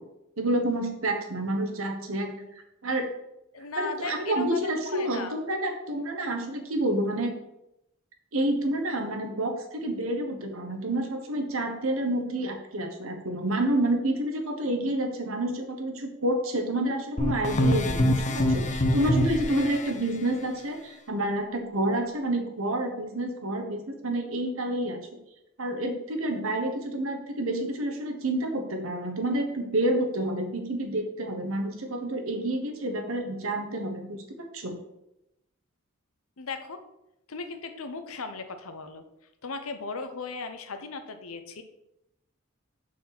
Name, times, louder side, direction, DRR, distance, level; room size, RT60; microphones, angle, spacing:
voice 1, 0.4-2.4 2.8-3.1 3.8-7.3 8.3-25.2 25.6-34.2 34.5-34.7, right 1 dB, 80° right, 4 dB, 1.3 m, -29 dB
voice 2, 3.5-5.4 36.4-36.8 37.3-39.0 39.4-41.6, left 4 dB, 85° left, 8 dB, 0.9 m, -37 dB
sound 1, 17.2-19.9, left 1 dB, 35° left, 0.7 m, -25 dB
6.1 x 4.3 x 6.0 m, 0.86 s
head